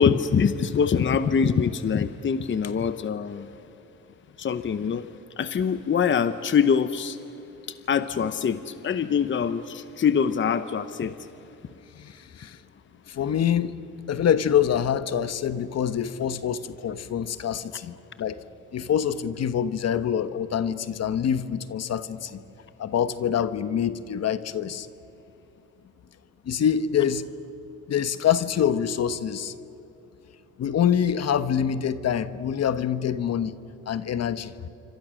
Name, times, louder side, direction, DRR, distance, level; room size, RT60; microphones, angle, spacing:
voice 1, 0.0-3.5 4.4-5.1 5.4-7.2 7.7-11.3, left 6 dB, 40° left, 12 dB, 0.9 m, -24 dB
voice 2, 11.9-12.6 13.1-13.7 14.1-18.4 18.7-22.4 22.8-24.9 26.4-27.2 27.9-29.5 30.6-33.5 33.9-34.7, left 8 dB, 55° left, 13 dB, 1.1 m, -25 dB
27.5 x 25.0 x 6.4 m, 2.9 s
cardioid pair, 90°, 30 cm